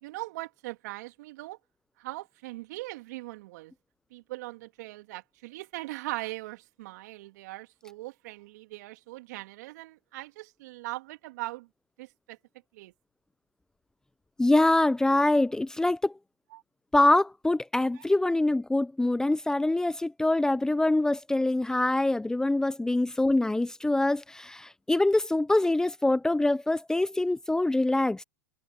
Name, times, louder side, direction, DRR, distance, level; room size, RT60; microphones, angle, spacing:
voice 1, 0.0-1.6 2.0-3.7 4.1-11.7 12.0-12.4 12.7-12.9 16.5-16.6 17.9-18.0, right 19 dB, 65° right, 2.7 m, -40 dB
voice 2, 14.4-16.1 16.9-28.2, left 2 dB, 5° left, 0.9 m, -24 dB
hypercardioid pair, 105°, 10 cm